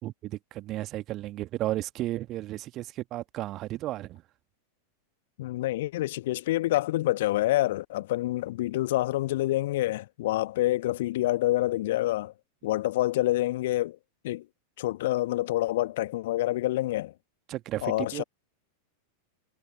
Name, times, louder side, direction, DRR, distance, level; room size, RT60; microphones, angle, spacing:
voice 1, 0.0-4.2 17.5-18.2, right 15 dB, 35° right, 1.7 m, -33 dB
voice 2, 5.4-12.3 12.6-14.0 14.2-14.4 14.8-17.1 17.8-18.2, left 16 dB, 55° left, 1.5 m, -27 dB
figure-of-eight pair, 90°, 0 cm